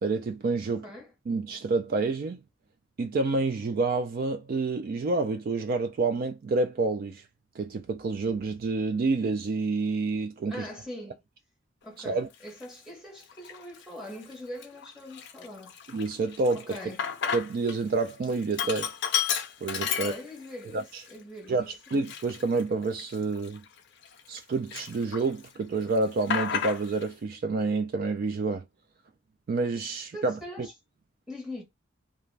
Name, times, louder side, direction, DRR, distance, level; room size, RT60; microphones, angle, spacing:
voice 1, 0.0-0.9 1.3-2.4 3.0-7.2 7.6-10.6 12.1-12.3 15.9-16.8 17.3-18.9 19.6-20.1 20.7-21.0 21.5-21.6 21.9-23.6 24.3-28.6 29.5-30.7, right 3 dB, 50° right, 0.3 m, -28 dB
voice 2, 0.6-1.1 10.5-11.2 11.8-15.7 16.5-17.0 19.9-21.9 30.1-30.7 31.3-31.6, left 1 dB, 5° right, 0.8 m, -42 dB
Sink (filling or washing), 12.5-12.6 13.3-13.8 14.2-14.3 14.6-17.8 18.1-20.6 21.1-21.2 21.8-24.4 24.7-25.5 25.7-27.1, left 8 dB, 65° left, 0.5 m, -32 dB
2.4 x 2.1 x 3.2 m
head